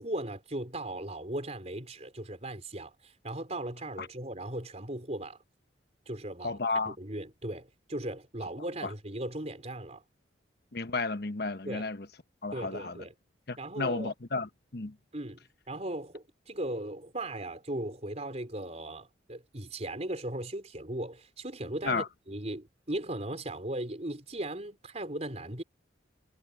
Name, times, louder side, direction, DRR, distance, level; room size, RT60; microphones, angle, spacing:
voice 1, 0.0-5.4 6.1-6.6 6.9-10.0 11.6-11.9 12.5-13.1 13.6-14.1 15.1-25.6, right 1 dB, 35° right, 4.7 m, -37 dB
voice 2, 6.4-6.9 10.7-12.1 12.4-13.0 13.5-14.9 21.8-22.1, left 3 dB, 55° left, 1.1 m, -32 dB
head